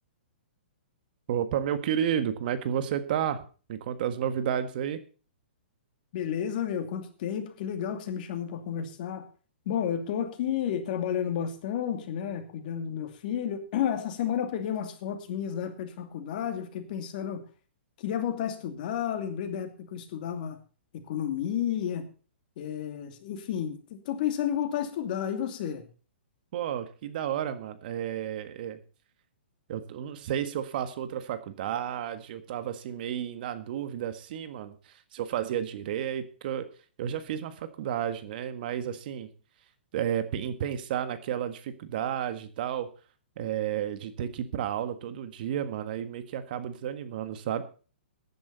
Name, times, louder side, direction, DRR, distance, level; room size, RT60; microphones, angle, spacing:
voice 1, 1.3-5.0 26.5-28.8 29.7-36.7 37.0-39.3 39.9-42.9 43.4-47.6, right 9 dB, 50° right, 11 dB, 1.7 m, -32 dB
voice 2, 6.1-9.3 9.7-17.4 18.0-20.6 21.1-22.1 22.6-25.8, left 9 dB, 50° left, 7 dB, 2.6 m, -31 dB
14.5 x 10.5 x 4.1 m, 0.37 s
hypercardioid pair, 135°, 6 cm